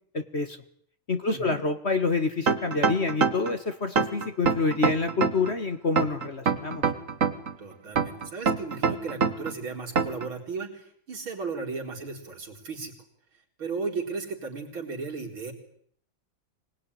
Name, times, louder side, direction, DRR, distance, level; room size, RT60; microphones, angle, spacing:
voice 1, 0.1-0.6 1.1-6.8, left 3 dB, 35° left, 10 dB, 1.6 m, -27 dB
voice 2, 1.3-1.6 7.6-12.9 13.6-15.5, right 4 dB, 80° right, 2 dB, 5.2 m, -35 dB
sound 1, 2.5-3.5 4.0-5.5 6.0-7.5 8.0-9.5 10.0-10.3, right 5 dB, 40° right, 1.9 m, -24 dB
25.0 x 20.5 x 10.0 m, 0.64 s
omnidirectional pair, 2.2 m